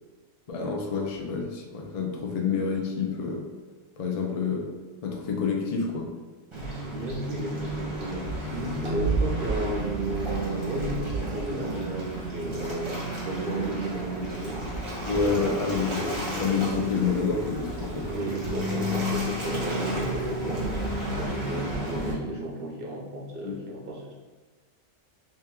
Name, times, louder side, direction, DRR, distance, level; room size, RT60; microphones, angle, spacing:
voice 1, 0.5-3.4 4.0-4.6 5.0-6.1 15.0-15.9 16.4-18.1 23.4-23.5, left 5 dB, 75° left, 0 dB, 0.3 m, -28 dB
Waves surf, 6.5-22.1, right 1 dB, 25° right, 0.8 m, -31 dB
voice 2, 6.8-14.7 15.2-16.2 18.1-24.0, right 2 dB, 60° right, -2 dB, 0.6 m, -33 dB
3.0 x 2.9 x 3.5 m, 1.3 s
omnidirectional pair, 1.5 m